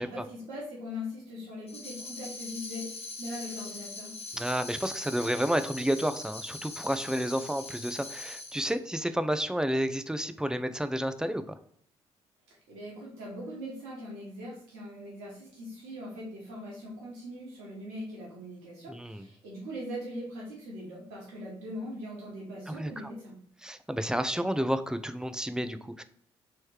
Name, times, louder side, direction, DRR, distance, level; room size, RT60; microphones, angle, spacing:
voice 1, 0.0-2.9 3.2-4.1 12.7-23.4, left 1 dB, 80° right, -4 dB, 1.3 m, -41 dB
Tambourine, 1.7-8.8, left 3 dB, 50° left, 1.2 m, -42 dB
voice 2, 4.3-11.4 18.9-19.3 22.7-23.1 23.6-26.0, equal, 5° right, 10 dB, 0.4 m, -30 dB
3.2 x 3.1 x 4.6 m, 0.65 s
hypercardioid pair, 45°, 13 cm